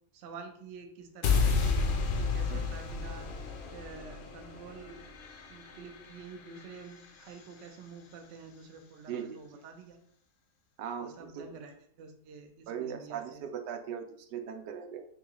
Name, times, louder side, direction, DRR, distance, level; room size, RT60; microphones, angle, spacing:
voice 1, 0.1-3.3 3.7-5.0 5.5-10.0 11.0-13.4, right 4 dB, 65° right, 5 dB, 0.7 m, -48 dB
sound 1, 1.2-7.4, left 5 dB, 80° left, 0.6 m, -32 dB
voice 2, 10.8-11.5 12.7-14.0 14.3-15.0, right 8 dB, 85° right, 6 dB, 1.2 m, -38 dB
3.8 x 2.9 x 3.6 m, 0.68 s
omnidirectional pair, 1.8 m